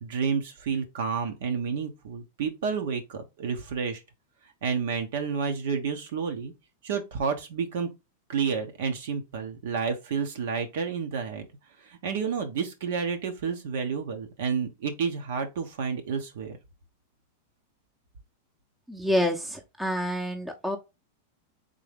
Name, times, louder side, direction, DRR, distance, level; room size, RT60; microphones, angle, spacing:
voice 1, 0.0-4.0 4.6-6.5 6.8-7.9 8.3-11.4 11.8-16.6, right 6 dB, 70° right, 0.9 m, -30 dB
voice 2, 18.9-20.8, equal, 5° right, 0.7 m, -28 dB
3.8 x 2.7 x 3.4 m
hypercardioid pair, 120°, 0 cm